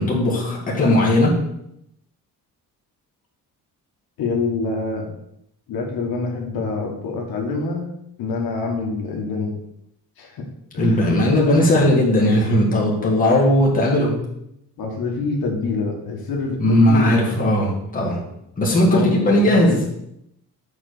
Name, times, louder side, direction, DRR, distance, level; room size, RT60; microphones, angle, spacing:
voice 1, 0.0-1.4 10.8-14.2 16.6-18.2 18.6-19.8, left 1 dB, 20° left, -3 dB, 1.9 m, -17 dB
voice 2, 4.2-5.1 5.7-7.8 8.2-9.5 10.2-10.4 10.7-11.1 11.6-11.8 14.8-17.1 18.7-19.8, left 3 dB, 70° left, 1 dB, 1.5 m, -26 dB
7.2 x 4.0 x 6.7 m, 0.79 s
cardioid pair, 160°, 37 cm